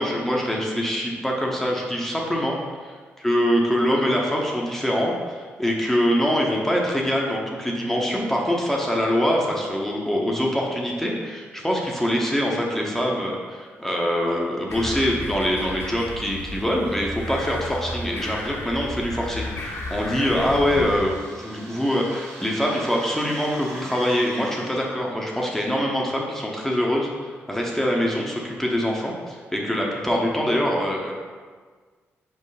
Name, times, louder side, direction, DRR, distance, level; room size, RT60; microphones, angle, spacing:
voice 1, 0.0-31.1, equal, 5° left, -2 dB, 1.1 m, -24 dB
sound 1, 14.7-21.0, left 1 dB, 60° left, 1.1 m, -33 dB
sound 2, 19.2-25.1, right 1 dB, 85° right, 1.7 m, -42 dB
5.2 x 4.7 x 4.1 m, 1.5 s
cardioid pair, 60°, 5 cm